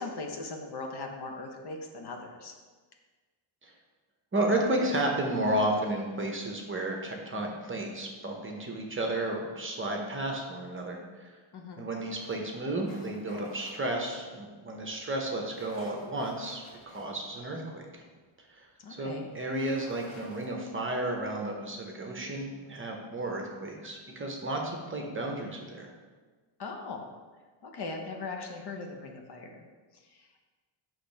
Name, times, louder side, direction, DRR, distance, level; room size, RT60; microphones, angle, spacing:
voice 1, 0.0-2.5 11.5-11.9 18.8-19.3 26.6-27.0 27.6-29.6 30.1-30.3, left 3 dB, 50° left, 3 dB, 0.8 m, -39 dB
voice 2, 4.3-11.4 11.8-17.9 18.5-18.6 18.9-25.9, right 1 dB, 25° right, 1 dB, 0.8 m, -32 dB
sound 1, 12.1-13.7 15.4-17.1 17.6-17.7 19.3-20.5, left 1 dB, 85° left, 1.7 m, -53 dB
6.6 x 3.2 x 5.3 m, 1.4 s
cardioid pair, 135°, 49 cm